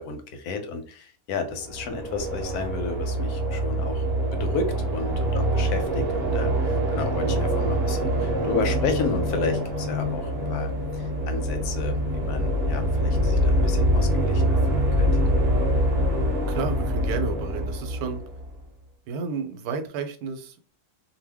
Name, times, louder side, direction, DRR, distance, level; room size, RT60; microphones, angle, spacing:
voice 1, 0.0-4.1 4.3-15.3, left 4 dB, 90° left, 6 dB, 1.2 m, -32 dB
sound 1, 1.6-18.6, equal, 50° right, 0.8 m, -24 dB
voice 2, 16.5-18.2 19.1-20.7, right 5 dB, 85° right, 6 dB, 1.1 m, -31 dB
2.7 x 2.2 x 3.3 m, 0.40 s
omnidirectional pair, 1.6 m